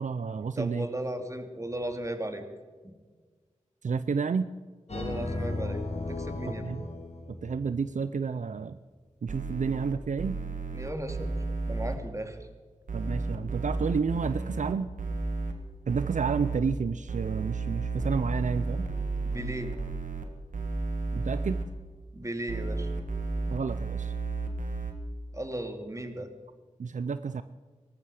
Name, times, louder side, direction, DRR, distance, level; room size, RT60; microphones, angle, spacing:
voice 1, 0.0-0.9 3.8-4.5 6.6-6.8 7.4-8.8 9.2-10.4 12.9-14.9 15.9-18.9 21.1-21.6 23.5-24.1 26.8-27.4, right 5 dB, 70° right, 12 dB, 0.5 m, -30 dB
voice 2, 0.6-2.4 2.8-2.9 4.9-5.8 6.1-6.7 10.7-11.3 11.7-12.4 19.2-19.7 22.1-22.9 25.3-26.3, right 1 dB, 25° right, 6 dB, 2.5 m, -35 dB
sound 1, 4.9-7.9, left 2 dB, 55° left, 3.9 m, -35 dB
sound 2, 9.3-12.0 12.9-15.5 15.9-16.6 17.1-20.3 20.5-21.6 22.5-24.9, right 3 dB, 90° right, 1.8 m, -32 dB
19.0 x 13.5 x 4.9 m, 1.5 s
cardioid pair, 45°, 13 cm